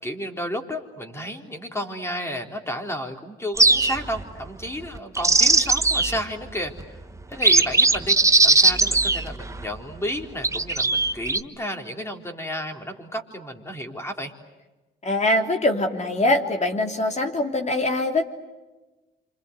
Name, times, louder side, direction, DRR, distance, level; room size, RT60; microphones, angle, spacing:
voice 1, 0.0-7.0 7.3-8.2 8.4-14.3, equal, 15° left, 3 dB, 3.9 m, -32 dB
sound 1, 3.6-4.2 4.9-6.2 6.8-6.9 7.3-9.6 10.4-11.4, right 3 dB, 15° right, 1.2 m, -19 dB
voice 2, 15.0-18.2, left 1 dB, 35° left, 4 dB, 3.3 m, -23 dB
27.5 x 26.0 x 8.2 m, 1.2 s
cardioid pair, 90°, 20 cm